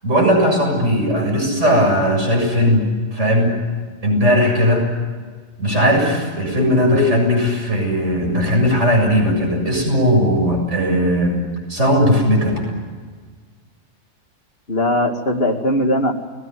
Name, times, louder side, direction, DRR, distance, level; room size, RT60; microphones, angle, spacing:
voice 1, 0.0-2.8 3.1-3.5 4.0-4.9 5.6-11.4 11.7-12.6, equal, 75° right, 1 dB, 7.9 m, -17 dB
voice 2, 6.6-7.3 14.7-16.1, left 1 dB, 55° left, 4 dB, 2.7 m, -20 dB
29.5 x 20.0 x 9.4 m, 1.5 s
omnidirectional pair, 1.2 m